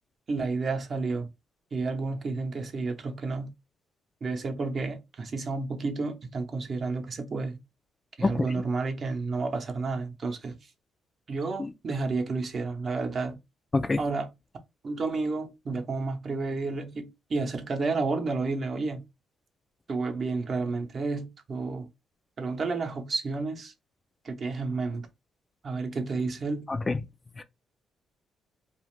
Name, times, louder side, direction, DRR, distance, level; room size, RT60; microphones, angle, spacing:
voice 1, 0.3-1.3 1.7-3.5 4.2-7.6 8.2-10.6 11.3-13.4 14.0-14.3 14.8-19.0 19.9-21.9 22.4-23.7 24.2-25.1 25.6-26.7, right 3 dB, 45° right, 0.7 m, -31 dB
voice 2, 8.2-8.6 11.6-11.7 13.7-14.0 26.7-27.0 27.4-27.5, left 3 dB, 25° left, 0.3 m, -27 dB
2.4 x 2.4 x 3.2 m
cardioid pair, 90°, 0 cm